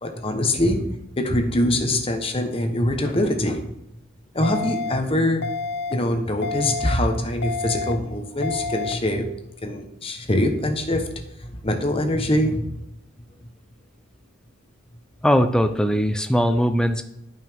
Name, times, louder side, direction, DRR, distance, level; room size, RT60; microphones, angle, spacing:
voice 1, 0.0-3.6 4.3-5.5 5.9-12.8, left 1 dB, 25° left, 5 dB, 1.0 m, -24 dB
sound 1, 4.4-4.9 5.4-5.9 6.4-6.9 7.4-7.9 8.4-8.9, left 4 dB, 50° left, 0.7 m, -28 dB
voice 2, 15.2-17.0, equal, 5° left, 9 dB, 0.5 m, -20 dB
12.0 x 5.5 x 3.6 m, 0.84 s
head